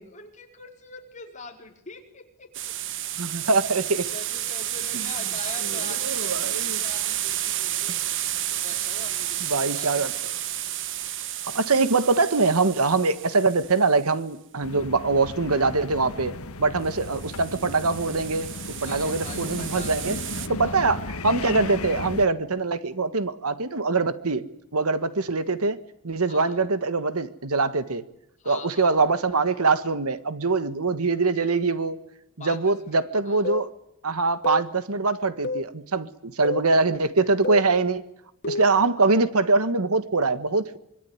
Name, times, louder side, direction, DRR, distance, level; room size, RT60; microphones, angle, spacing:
voice 1, 0.0-2.7 3.4-3.6 4.1-8.0 8.5-10.1 11.5-11.6 18.8-21.0 26.3-26.6 28.4-28.9 32.4-33.4, left 4 dB, 35° left, 2 dB, 4.5 m, -44 dB
sound 1, 2.5-14.0 16.9-20.5, right 12 dB, 60° right, 1.2 m, -31 dB
voice 2, 3.2-4.1 4.9-5.1 5.6-6.8 9.4-10.1 11.4-18.5 18.8-20.2 20.5-24.5 24.7-25.8 26.0-28.0 28.4-32.0 32.4-33.7 34.0-38.0 38.5-40.8, right 3 dB, 85° right, 13 dB, 1.5 m, -23 dB
sound 2, 14.6-22.3, left 2 dB, 75° left, 1.5 m, -35 dB
sound 3, 33.4-33.7 34.4-34.7 35.4-35.7 36.4-36.7 37.4-37.7 38.4-38.8, left 3 dB, 50° left, 1.4 m, -30 dB
25.5 x 23.0 x 9.7 m, 0.80 s
head